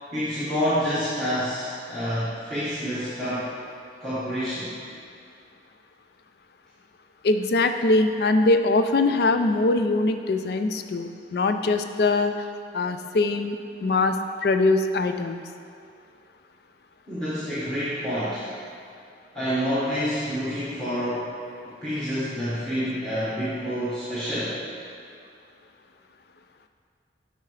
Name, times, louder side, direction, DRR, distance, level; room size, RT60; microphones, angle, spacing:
voice 1, 0.1-3.5 4.0-4.8 17.1-18.5 19.3-21.3 21.8-24.6, equal, 5° left, -12 dB, 1.4 m, -28 dB
voice 2, 7.2-12.5 12.7-15.4, left 2 dB, 55° left, 7 dB, 0.4 m, -22 dB
8.5 x 5.6 x 3.2 m, 2.4 s
head